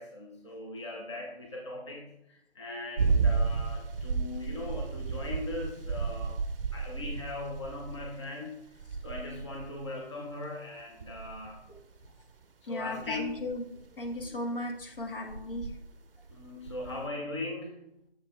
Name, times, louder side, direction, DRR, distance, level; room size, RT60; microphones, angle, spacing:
voice 1, 0.0-6.4 6.7-8.6 9.0-11.6 12.7-13.4 16.3-17.8, left 2 dB, 25° left, -1 dB, 0.6 m, -39 dB
sound 1, 3.0-8.2 8.7-9.8 11.0-12.1 13.0-14.3 15.0-15.9 16.3-17.1, right 5 dB, 60° right, 0.5 m, -32 dB
voice 2, 12.6-13.7 13.9-15.7, left 1 dB, 60° left, 3 dB, 1.1 m, -36 dB
6.6 x 3.8 x 4.3 m, 0.81 s
figure-of-eight pair, 155°, 32 cm